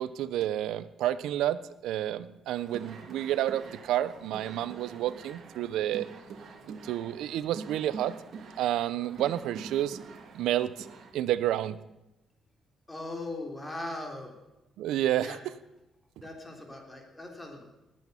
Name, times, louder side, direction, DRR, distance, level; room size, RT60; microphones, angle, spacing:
voice 1, 0.0-6.1 6.8-8.1 8.6-10.0 10.3-10.9 11.1-11.8 14.8-15.4, right 12 dB, 85° right, 16 dB, 0.6 m, -30 dB
sound 1, 2.5-11.1, right 5 dB, 60° right, 1.9 m, -46 dB
voice 2, 12.9-14.3 15.2-15.4 16.2-17.6, left 2 dB, 15° left, 1 dB, 3.6 m, -39 dB
19.5 x 8.4 x 5.7 m, 0.96 s
cardioid pair, 90°, 0 cm